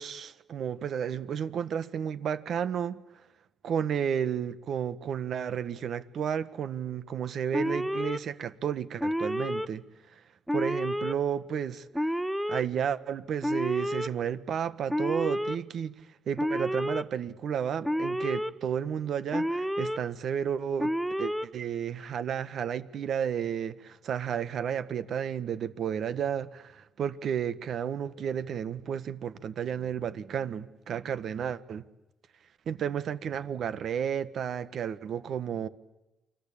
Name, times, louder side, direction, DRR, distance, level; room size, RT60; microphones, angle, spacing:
voice 1, 0.0-3.0 3.6-9.8 10.5-12.1 12.5-16.0 16.3-20.9 21.2-31.8 32.7-35.7, right 8 dB, 65° right, 1.5 m, -32 dB
Alarm, 7.5-8.2 9.0-9.7 10.5-11.1 11.9-12.6 13.4-14.1 14.9-15.6 16.4-17.0 17.8-18.5 19.3-20.0 20.8-21.5, equal, ahead, 1.1 m, -29 dB
29.0 x 23.0 x 8.7 m
cardioid pair, 90°, 0 cm